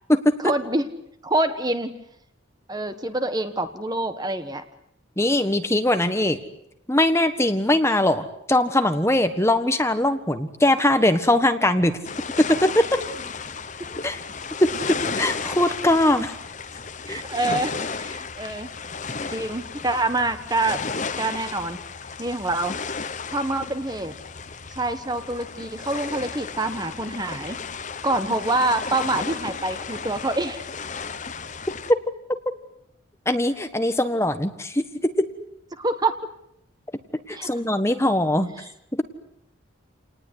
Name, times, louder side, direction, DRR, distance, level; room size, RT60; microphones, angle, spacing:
voice 1, 0.4-0.9 1.2-1.9 2.7-4.6 13.8-13.9 17.0-18.7 19.3-20.8 21.2-21.8 22.2-22.7 23.3-24.2 24.7-27.6 28.0-30.7 35.7-36.3 37.3-37.5 38.6-38.7, right 2 dB, 20° right, 9 dB, 1.3 m, -26 dB
voice 2, 5.2-6.4 6.9-12.0 12.4-13.0 14.0-14.2 14.6-16.3 17.1-17.2 33.2-35.3 37.3-38.5 38.9-39.0, left 1 dB, 15° left, 8 dB, 1.4 m, -21 dB
sound 1, 12.0-31.9, left 5 dB, 35° left, 1.1 m, -34 dB
29.0 x 19.5 x 9.6 m, 0.78 s
head